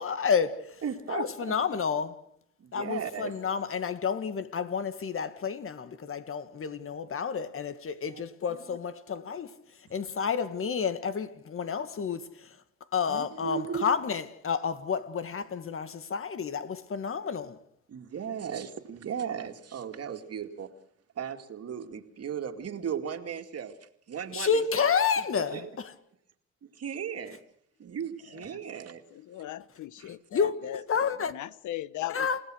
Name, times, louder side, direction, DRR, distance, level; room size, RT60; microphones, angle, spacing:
voice 1, 0.0-0.8 1.1-2.2 2.7-12.6 12.9-17.6 24.3-25.9 30.0-31.3 32.1-32.4, left 6 dB, 45° left, 1.9 m, -30 dB
voice 2, 0.8-1.6 2.6-3.4 8.1-8.2 8.5-8.6 13.1-13.9 17.9-20.7 21.2-24.9 25.5-25.7 26.7-27.4 27.8-29.0 30.0-30.2, right 8 dB, 55° right, 2.4 m, -36 dB
voice 3, 29.1-30.8 31.3-32.3, left 13 dB, 75° left, 0.9 m, -38 dB
29.0 x 17.0 x 6.4 m
cardioid pair, 90°, 30 cm